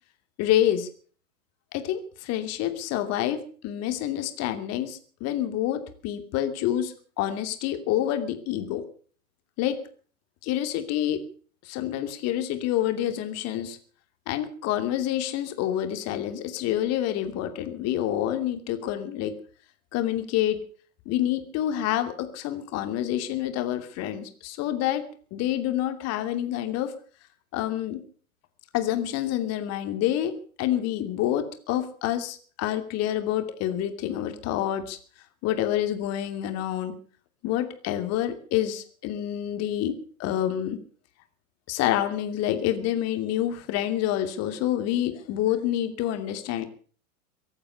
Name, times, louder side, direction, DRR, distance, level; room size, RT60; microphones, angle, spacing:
voice 1, 0.4-0.9 1.7-8.8 9.6-9.8 10.4-11.2 11.6-13.8 14.3-19.3 19.9-20.6 21.1-25.0 25.3-26.9 27.5-28.0 28.7-35.0 35.4-36.9 37.4-39.9 40.2-40.8 41.7-46.6, left 12 dB, 35° left, 8 dB, 2.7 m, -27 dB
23.5 x 8.8 x 6.8 m, 0.44 s
figure-of-eight pair, 100°, 42 cm